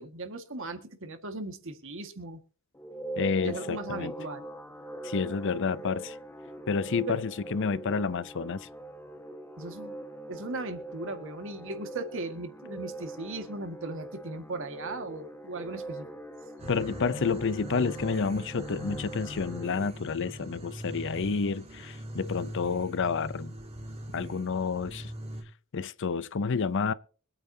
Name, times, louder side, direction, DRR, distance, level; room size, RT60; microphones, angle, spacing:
voice 1, 0.0-2.4 3.4-4.5 7.1-7.2 9.6-10.0 10.3-16.1, right 2 dB, 65° right, 1.8 m, -38 dB
sound 1, 2.7-19.9, right 1 dB, 10° left, 1.5 m, -42 dB
voice 2, 3.2-4.1 5.0-6.2 6.7-8.7 16.7-23.5 24.1-25.1 25.7-26.9, left 5 dB, 60° left, 0.6 m, -29 dB
sound 2, 16.6-25.4, equal, 30° right, 2.8 m, -41 dB
25.0 x 9.0 x 2.8 m
head